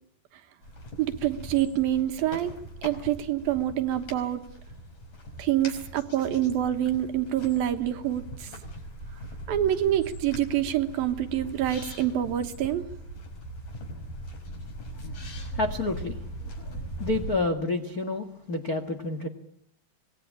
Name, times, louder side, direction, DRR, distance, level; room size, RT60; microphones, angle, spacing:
sound 1, 0.6-17.4, equal, 45° left, 6.4 m, -40 dB
voice 1, 1.0-2.6 2.8-4.4 5.4-8.6 9.5-12.9, right 12 dB, 65° right, 2.8 m, -26 dB
voice 2, 15.0-19.3, left 2 dB, 75° left, 0.8 m, -30 dB
26.0 x 20.0 x 8.7 m
omnidirectional pair, 4.9 m